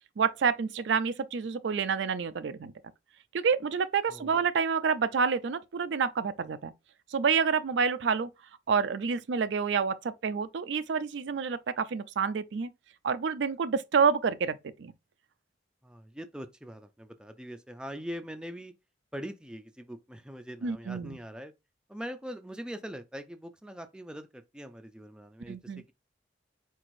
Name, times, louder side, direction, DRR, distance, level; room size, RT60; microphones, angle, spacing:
voice 1, 0.2-2.7 3.3-6.7 7.1-8.3 8.7-12.7 13.0-14.9 20.6-21.2 25.5-25.8, right 6 dB, 70° right, 0.4 m, -28 dB
voice 2, 15.8-18.7 19.1-21.5 21.9-25.9, equal, 5° right, 0.4 m, -42 dB
4.6 x 3.9 x 2.6 m
head